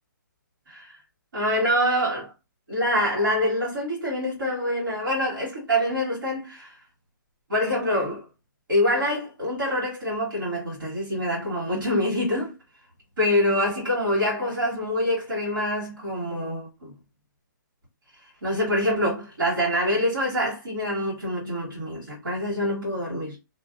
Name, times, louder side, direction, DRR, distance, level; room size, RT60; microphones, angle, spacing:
voice 1, 0.7-1.0 1.3-2.3 2.7-6.8 7.5-8.3 8.7-12.5 13.2-16.9 18.4-23.3, left 1 dB, 90° right, 1.5 m, -25 dB
2.5 x 2.2 x 2.3 m
hypercardioid pair, 175°, 11 cm